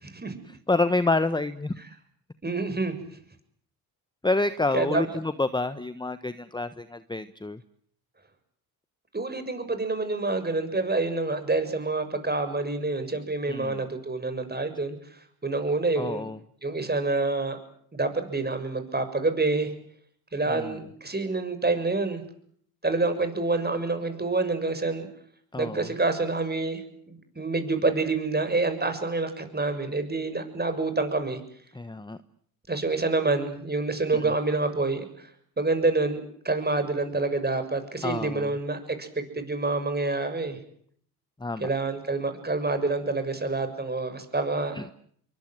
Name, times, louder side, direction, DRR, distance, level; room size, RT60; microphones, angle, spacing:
voice 1, 0.5-1.7 4.2-7.6 13.5-13.8 16.0-16.4 20.5-20.8 25.5-25.9 31.7-32.2 34.1-34.3 38.0-38.5 41.4-41.7 44.7-44.9, left 2 dB, 10° left, 13 dB, 1.2 m, -28 dB
voice 2, 2.4-3.0 4.7-5.0 9.1-15.0 15.4-16.3 16.6-17.6 17.9-19.7 20.3-22.2 22.8-25.1 25.5-26.8 27.1-31.4 32.7-35.3 35.6-40.6 41.6-44.8, right 3 dB, 20° right, 9 dB, 6.8 m, -27 dB
25.5 x 23.5 x 8.0 m, 0.63 s
hypercardioid pair, 55°, 45 cm